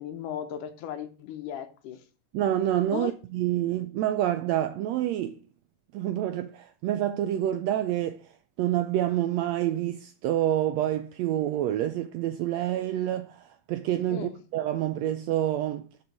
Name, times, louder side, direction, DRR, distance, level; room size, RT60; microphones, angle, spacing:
voice 1, 0.0-2.0 2.9-3.1 14.1-14.3, left 9 dB, 90° left, 2.5 m, -36 dB
voice 2, 2.3-5.4 5.9-8.2 8.6-15.9, right 12 dB, 85° right, 1.5 m, -27 dB
8.2 x 5.1 x 6.3 m
omnidirectional pair, 3.6 m